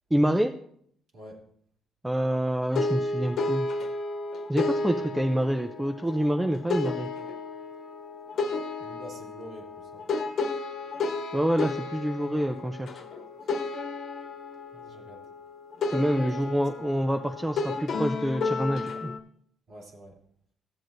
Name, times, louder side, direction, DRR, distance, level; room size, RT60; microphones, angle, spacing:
voice 1, 0.1-0.5 2.0-3.7 4.5-7.1 11.3-12.9 15.9-19.1, equal, 10° right, 5 dB, 0.5 m, -27 dB
sound 1, 2.7-19.2, left 3 dB, 65° left, 1.1 m, -32 dB
voice 2, 8.8-10.1 14.7-15.2 16.1-16.4 17.2-17.3 19.7-20.2, right 1 dB, 70° right, -4 dB, 2.8 m, -46 dB
15.0 x 7.6 x 2.6 m, 0.67 s
cardioid pair, 90°, 0 cm